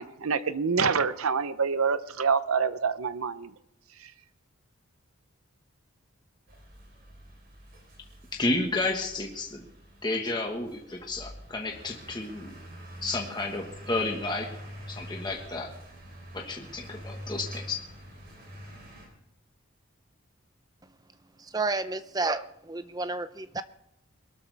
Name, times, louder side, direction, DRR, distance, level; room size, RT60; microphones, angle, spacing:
voice 1, 0.0-3.5, right 5 dB, 90° right, 13 dB, 0.8 m, -26 dB
sound 1, 6.5-19.1, equal, 45° right, 4.1 m, -46 dB
voice 2, 8.3-9.6 10.0-12.5 13.0-14.5 14.9-15.7 16.3-17.8, left 2 dB, 20° left, 1 dB, 1.4 m, -31 dB
voice 3, 21.4-23.6, right 3 dB, 15° right, 12 dB, 0.5 m, -31 dB
22.0 x 13.0 x 3.5 m, 0.81 s
head